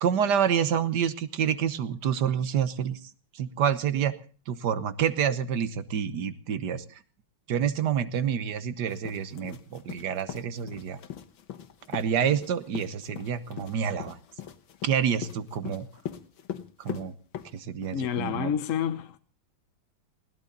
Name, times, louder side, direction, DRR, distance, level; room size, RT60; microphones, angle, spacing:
voice 1, 0.0-3.0 3.3-4.1 4.5-6.8 7.5-11.0 11.9-14.2 14.8-15.9 16.8-17.2 17.5-18.5, right 8 dB, 60° right, 1.5 m, -28 dB
sound 1, 8.9-18.0, left 9 dB, 70° left, 1.9 m, -40 dB
voice 2, 17.9-19.2, left 8 dB, 50° left, 1.0 m, -29 dB
20.5 x 17.0 x 3.9 m
omnidirectional pair, 2.2 m